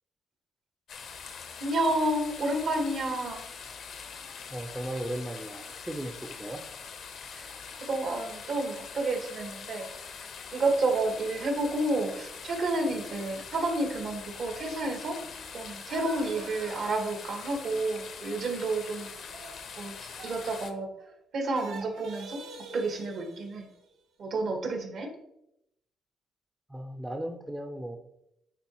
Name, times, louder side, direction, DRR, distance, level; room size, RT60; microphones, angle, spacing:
sound 1, 0.9-20.7, left 6 dB, 65° left, 0.8 m, -43 dB
voice 1, 1.6-3.4 7.3-7.5 7.7-9.9 10.5-15.2 15.5-19.3 19.8-20.9 21.3-22.4 22.7-23.7 24.2-25.1, right 2 dB, 65° right, 2 dB, 1.6 m, -30 dB
voice 2, 4.5-6.6 26.7-28.0, right 1 dB, 10° right, 5 dB, 0.6 m, -36 dB
sound 2, 15.7-21.1 21.4-23.9, right 3 dB, 85° right, 1.1 m, -47 dB
9.3 x 3.9 x 3.0 m, 0.81 s
cardioid pair, 90°, 0 cm